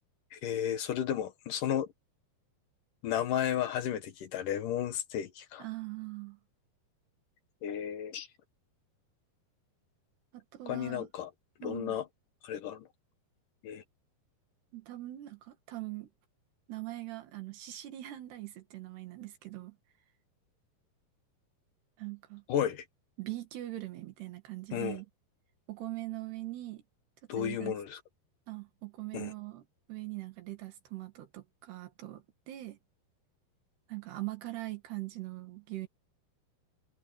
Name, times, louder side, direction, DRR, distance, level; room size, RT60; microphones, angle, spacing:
voice 1, 0.3-1.9 3.0-5.7 7.6-8.3 10.7-11.3 11.6-12.1 12.4-12.9 13.6-13.8 22.5-22.9 24.7-25.0 27.3-28.0 29.1-29.3, left 10 dB, 65° left, 2.4 m, -33 dB
voice 2, 5.6-6.4 10.3-11.1 11.6-12.0 14.7-16.1 16.7-19.8 22.0-22.4 23.2-25.1 25.7-26.8 27.4-27.8 28.5-29.6 29.9-32.8 33.9-35.9, right 17 dB, 85° right, 4.2 m, -41 dB
omnidirectional pair, 4.6 m